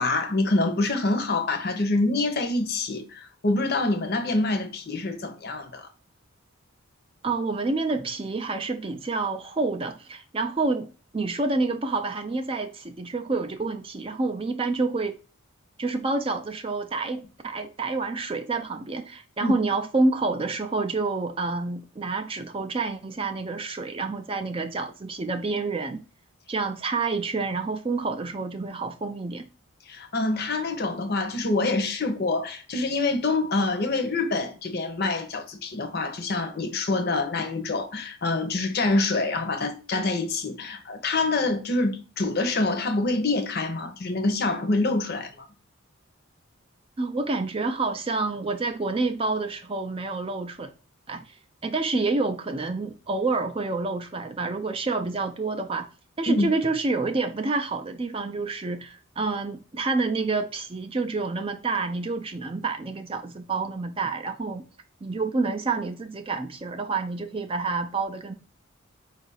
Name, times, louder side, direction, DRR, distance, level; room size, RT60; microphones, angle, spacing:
voice 1, 0.0-5.9 19.4-19.5 29.9-45.5 56.3-56.5, left 2 dB, 45° left, 0.7 m, -26 dB
voice 2, 7.2-15.2 15.8-26.0 26.5-29.5 47.0-50.7 51.1-51.2 51.6-55.9 56.2-64.6 65.0-68.3, right 3 dB, 25° right, 0.4 m, -28 dB
4.7 x 2.4 x 3.9 m
head